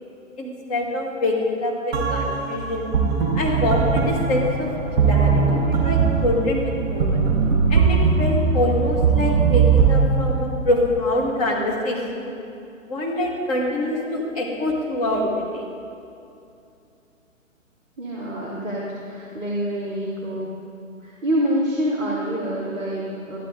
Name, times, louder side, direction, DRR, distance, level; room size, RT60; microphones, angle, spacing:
voice 1, 0.4-2.9 3.3-4.7 5.0-7.2 7.7-12.3 12.9-15.7, left 1 dB, 30° left, -3 dB, 1.7 m, -25 dB
sound 1, 1.9-10.1, right 5 dB, 35° right, 1.5 m, -20 dB
voice 2, 18.0-20.5 21.0-23.4, equal, 10° right, -10 dB, 0.6 m, -26 dB
11.5 x 10.0 x 3.7 m, 2.6 s
figure-of-eight pair, 130°, 40 cm